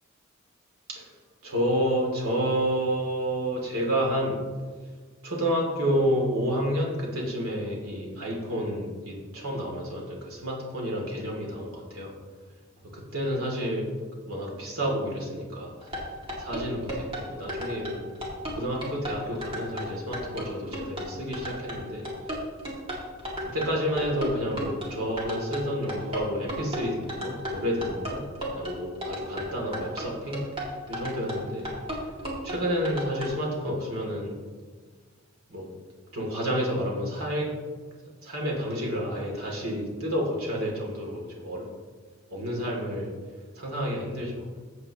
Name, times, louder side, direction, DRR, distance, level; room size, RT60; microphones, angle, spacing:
voice 1, 1.4-4.4 5.2-12.1 12.9-13.9 14.3-15.7 16.4-18.0 18.5-22.0 23.4-28.2 28.5-30.4 30.9-31.7 32.4-34.3 35.5-35.7 36.1-37.5 38.2-41.7 42.3-43.1 43.6-44.5, equal, 90° right, -2 dB, 2.6 m, -30 dB
sound 1, 15.8-33.3, equal, 25° right, 2.2 m, -34 dB
14.5 x 7.8 x 2.9 m, 1.5 s
head